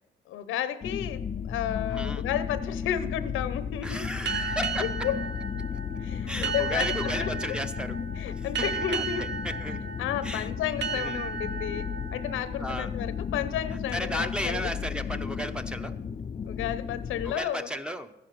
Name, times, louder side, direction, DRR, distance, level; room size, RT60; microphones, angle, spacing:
voice 1, 0.3-4.1 4.8-5.2 6.0-7.6 8.2-9.2 10.0-11.8 12.1-14.7 16.4-17.7, left 10 dB, 90° left, 13 dB, 0.9 m, -32 dB
sound 1, 0.8-17.3, left 7 dB, 30° left, 0.5 m, -34 dB
voice 2, 1.9-2.2 3.8-5.1 6.3-8.0 8.4-9.8 10.2-10.5 10.9-11.2 12.6-12.9 13.9-16.0 17.2-18.1, equal, 5° right, 8 dB, 0.8 m, -34 dB
sound 2, 4.2-13.5, right 5 dB, 65° right, 1.0 m, -35 dB
14.0 x 10.5 x 6.1 m, 0.94 s
cardioid pair, 90°, 20 cm